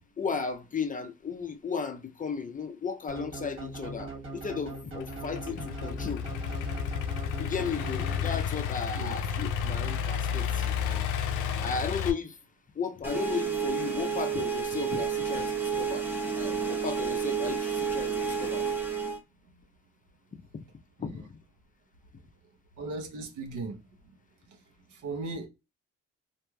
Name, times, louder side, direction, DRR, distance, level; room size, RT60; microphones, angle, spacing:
voice 1, 0.2-6.3 7.4-11.1 11.6-12.4 12.8-16.1 16.4-18.7 21.0-21.3, left 5 dB, 25° left, 0.5 m, -35 dB
sound 1, 3.1-8.8, right 2 dB, 40° right, 1.2 m, -41 dB
Idling / Accelerating revving vroom, 5.0-12.1, left 7 dB, 85° left, 0.5 m, -31 dB
sound 2, 13.0-19.2, right 6 dB, 5° right, 0.9 m, -30 dB
voice 2, 22.8-23.8 24.5-24.6 24.9-25.5, right 3 dB, 80° right, 0.9 m, -37 dB
3.0 x 2.5 x 2.2 m
cardioid pair, 90°, 30 cm